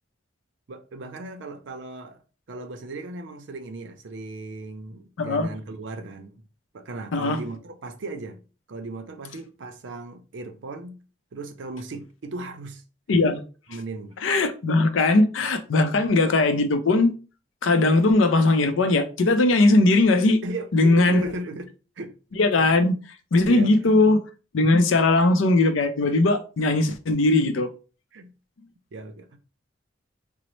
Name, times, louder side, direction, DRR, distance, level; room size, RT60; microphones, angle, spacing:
voice 1, 0.7-2.2 2.5-6.4 6.7-8.4 8.7-11.0 11.3-12.8 13.7-14.2 20.4-22.1 23.5-23.9 28.1-28.3 28.9-29.4, right 2 dB, 70° right, 0.5 m, -36 dB
voice 2, 5.2-5.5 7.1-7.4 13.1-13.4 14.2-17.1 17.6-20.4 20.7-21.3 22.4-23.0 23.3-24.2 24.5-27.7, left 2 dB, 85° left, 0.5 m, -19 dB
3.9 x 2.0 x 3.0 m
head